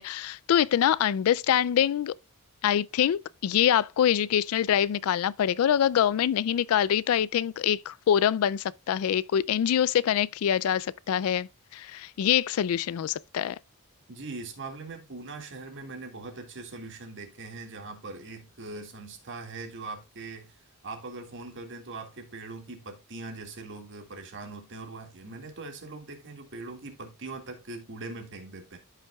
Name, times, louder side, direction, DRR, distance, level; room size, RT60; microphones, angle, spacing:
voice 1, 0.0-2.1 2.6-13.6, left 9 dB, 70° left, 0.3 m, -25 dB
voice 2, 14.1-20.6 20.8-28.8, right 3 dB, 55° right, 1.9 m, -41 dB
13.5 x 5.7 x 2.3 m
head